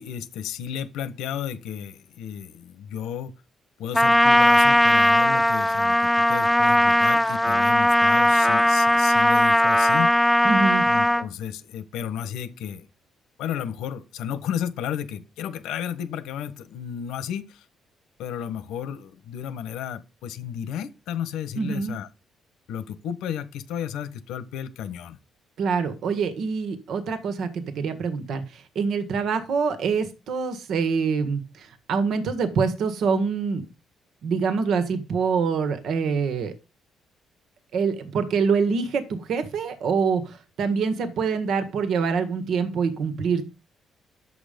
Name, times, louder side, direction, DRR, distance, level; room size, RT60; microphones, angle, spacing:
voice 1, 0.0-3.3 3.8-10.1 10.9-12.9 13.4-17.6 18.2-22.1 22.7-25.2, left 9 dB, 90° left, 1.2 m, -33 dB
Trumpet, 3.9-11.3, left 1 dB, 5° left, 0.8 m, -18 dB
voice 2, 10.4-10.8 21.5-22.0 25.6-33.6 34.2-36.5 37.7-43.4, right 5 dB, 75° right, 1.7 m, -25 dB
11.0 x 7.2 x 5.2 m
cardioid pair, 90°, 0 cm